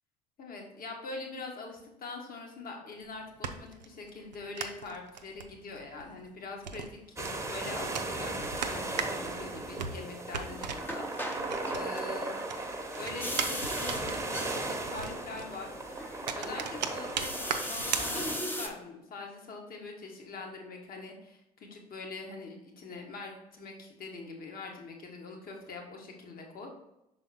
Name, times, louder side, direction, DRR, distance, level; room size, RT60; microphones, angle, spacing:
voice 1, 0.4-11.1 11.7-12.3 13.0-15.8 16.3-26.7, left 3 dB, 45° left, 1 dB, 1.6 m, -43 dB
sound 1, 3.0-12.2 12.5-18.7, right 6 dB, 90° right, 0.4 m, -39 dB
sound 2, 7.2-18.4, right 2 dB, 15° right, 1.1 m, -37 dB
sound 3, 10.3-18.7, left 1 dB, 10° left, 0.9 m, -39 dB
5.7 x 4.0 x 4.2 m, 0.87 s
hypercardioid pair, 60°, 21 cm